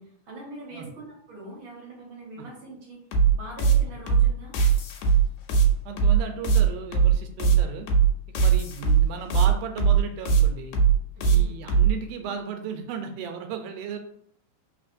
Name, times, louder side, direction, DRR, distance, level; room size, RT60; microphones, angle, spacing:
voice 1, 0.0-4.6 11.1-11.5, right 2 dB, 60° right, -3 dB, 1.4 m, -43 dB
sound 1, 3.1-11.9, right 7 dB, 75° left, 2.0 m, -19 dB
voice 2, 5.9-7.9 8.3-10.8 11.2-14.0, right 7 dB, 85° right, 5 dB, 2.0 m, -35 dB
4.1 x 3.7 x 2.5 m, 0.68 s
omnidirectional pair, 3.5 m